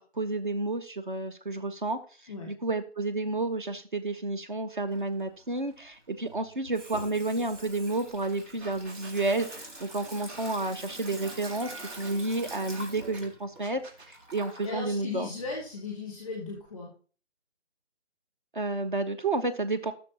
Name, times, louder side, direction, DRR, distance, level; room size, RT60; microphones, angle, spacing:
voice 1, 0.0-13.8 14.1-15.3 18.5-19.9, right 2 dB, 45° right, 8 dB, 0.7 m, -31 dB
Water tap faucet / Sink (filling or washing), 4.9-16.6, right 1 dB, 85° right, 2.9 m, -46 dB
sound 1, 8.2-8.3 8.6-13.2 13.6-14.1, right 3 dB, 60° right, 2.4 m, -47 dB
voice 2, 14.6-16.9, left 3 dB, ahead, -1 dB, 0.8 m, -36 dB
14.0 x 6.2 x 2.9 m, 0.40 s
figure-of-eight pair, 165°, 36 cm